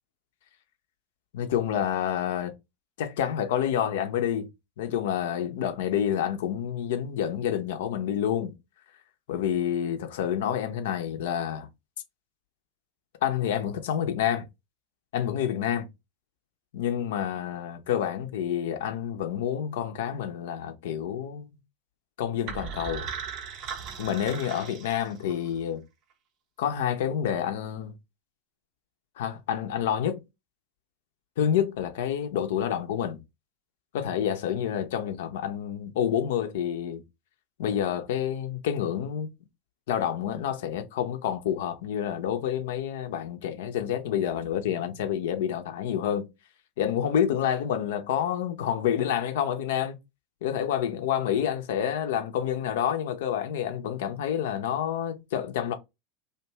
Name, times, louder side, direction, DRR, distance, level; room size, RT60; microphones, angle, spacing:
voice 1, 1.3-2.5 3.0-4.5 4.8-8.6 9.3-11.7 13.2-14.5 15.1-15.9 16.7-21.6 22.2-23.1 24.0-25.8 26.6-28.0 29.2-30.2 31.4-33.2 33.9-37.0 37.6-39.3 39.9-46.3 46.8-50.0 50.4-55.7, left 9 dB, 65° left, 0.5 m, -28 dB
sound 1, 22.5-25.5, right 7 dB, 45° right, 0.5 m, -38 dB
2.6 x 2.2 x 2.9 m
figure-of-eight pair, 80°, 0 cm